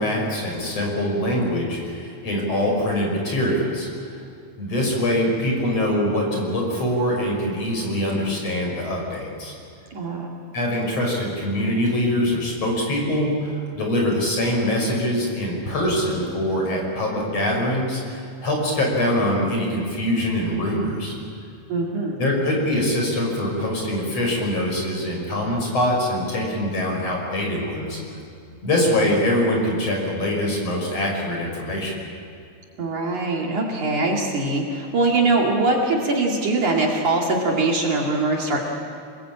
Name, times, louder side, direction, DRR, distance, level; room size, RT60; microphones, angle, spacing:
voice 1, 0.0-3.9 4.6-9.5 10.5-21.2 22.2-28.0 28.6-31.9, left 1 dB, 40° left, 0 dB, 6.7 m, -23 dB
voice 2, 9.9-10.3 21.7-22.2 32.8-38.6, right 2 dB, 55° right, -1 dB, 3.6 m, -22 dB
28.5 x 21.0 x 8.8 m, 2.4 s
omnidirectional pair, 4.5 m